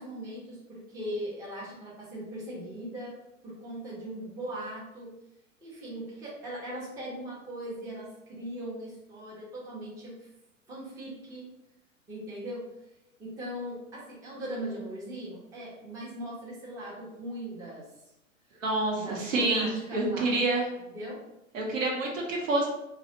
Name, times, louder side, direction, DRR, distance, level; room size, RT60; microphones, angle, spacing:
voice 1, 0.0-3.2 3.4-5.1 5.6-10.3 10.7-11.5 12.1-12.7 13.2-17.8 19.0-20.4 20.8-21.2, right 1 dB, 10° right, -6 dB, 0.5 m, -39 dB
voice 2, 18.6-20.6 21.5-22.7, right 2 dB, 70° right, -1 dB, 0.9 m, -27 dB
2.3 x 2.0 x 2.8 m, 0.89 s
hypercardioid pair, 110°, 40 cm